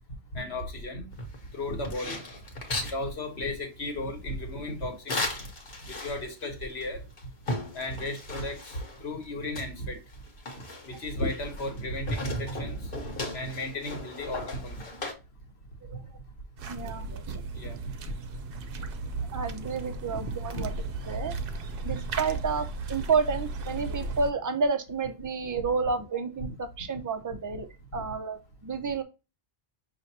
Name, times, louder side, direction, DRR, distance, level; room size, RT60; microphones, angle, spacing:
voice 1, 0.3-1.1 1.5-2.2 2.8-5.4 5.8-7.0 7.7-10.0 10.9-12.9 13.3-15.0 17.5-17.8 20.1-20.2 20.5-20.6 27.9-28.0, left 1 dB, 75° left, 1.6 m, -35 dB
sound 1, 1.1-3.0 5.1-6.4 6.8-6.9 7.2-9.0 9.5-11.8 12.1-15.1, left 1 dB, 60° left, 1.4 m, -36 dB
sound 2, 16.6-24.3, right 3 dB, 65° right, 0.8 m, -36 dB
voice 2, 16.7-17.4 19.3-20.7 21.1-21.3 21.8-29.0, right 4 dB, 25° right, 0.4 m, -30 dB
6.4 x 2.9 x 2.7 m
omnidirectional pair, 1.1 m